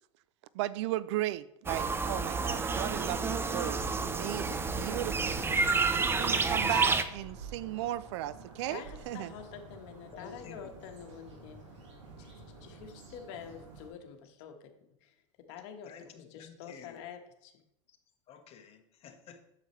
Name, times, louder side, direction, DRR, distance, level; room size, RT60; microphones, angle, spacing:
voice 1, 0.5-5.4 6.2-9.3, right 15 dB, 70° right, 0.4 m, -36 dB
sound 1, 1.7-7.0, right 4 dB, 15° right, 0.6 m, -29 dB
sound 2, 4.5-13.9, right 4 dB, 85° right, 2.3 m, -50 dB
voice 2, 8.7-11.6 12.2-14.7 15.0-15.1 15.5-17.5, left 8 dB, 65° left, 1.2 m, -47 dB
voice 3, 10.1-10.7 15.8-17.0 18.3-19.4, left 6 dB, 40° left, 1.2 m, -51 dB
7.9 x 6.9 x 3.1 m
hypercardioid pair, 100°, 15 cm